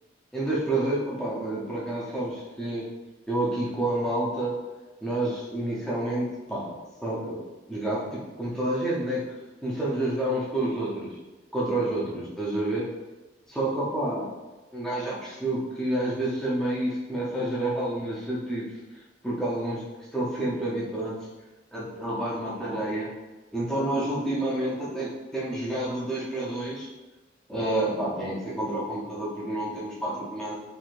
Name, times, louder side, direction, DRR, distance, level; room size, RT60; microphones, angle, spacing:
voice 1, 0.3-2.9 3.3-4.5 5.0-6.7 7.0-9.2 9.6-11.2 11.5-12.9 13.5-14.3 14.7-18.7 19.2-19.8 20.1-21.2 21.7-23.1 23.5-26.9 27.5-30.6, right 1 dB, 5° left, -7 dB, 0.6 m, -29 dB
3.1 x 2.7 x 2.5 m, 1.1 s
head